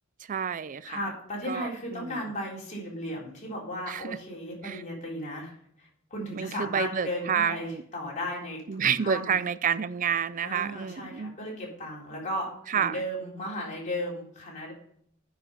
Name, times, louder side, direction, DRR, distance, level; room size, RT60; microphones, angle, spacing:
voice 1, 0.3-1.0 1.5-2.2 3.9-4.2 4.6-4.8 6.3-7.8 8.7-11.3 12.7-13.0, right 7 dB, 40° right, 0.4 m, -29 dB
voice 2, 0.8-9.3 10.4-14.7, equal, 35° left, 3.8 m, -35 dB
9.7 x 5.6 x 5.5 m
head